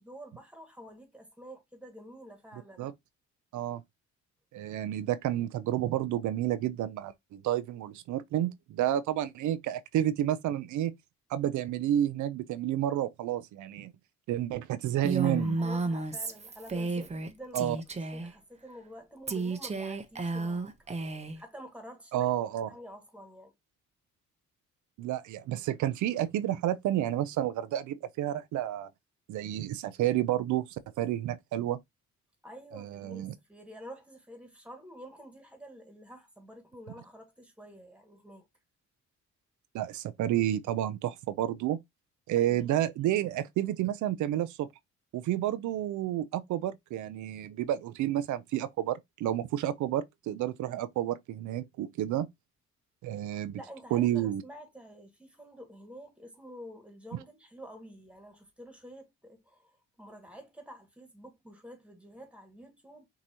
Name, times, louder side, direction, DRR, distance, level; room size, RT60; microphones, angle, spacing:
voice 1, 0.0-2.9 15.2-17.7 18.0-21.0 21.4-22.3 22.6-23.5 32.4-38.5 42.4-43.1 53.3-63.1, equal, 5° right, 1.8 m, -49 dB
voice 2, 4.5-10.9 11.3-13.9 14.3-15.6 17.5-17.8 22.1-22.7 25.0-28.9 29.3-31.8 32.7-33.3 39.7-41.8 42.3-44.7 45.1-52.3 53.0-53.6 53.9-54.4, right 12 dB, 75° right, 0.5 m, -30 dB
Female speech woman speaking, 15.0-17.3 17.5-18.3 19.3-21.4, right 3 dB, 20° right, 0.8 m, -32 dB
6.1 x 2.9 x 2.8 m
cardioid pair, 90°, 30 cm